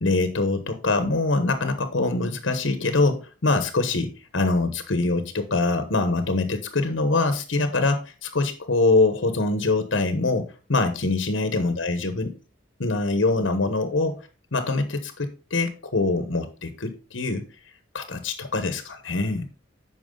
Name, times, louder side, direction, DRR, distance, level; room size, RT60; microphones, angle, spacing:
voice 1, 0.0-12.3 12.8-14.1 14.5-17.4 17.9-19.5, left 3 dB, 85° left, 9 dB, 1.1 m, -24 dB
9.3 x 6.0 x 3.8 m, 0.33 s
head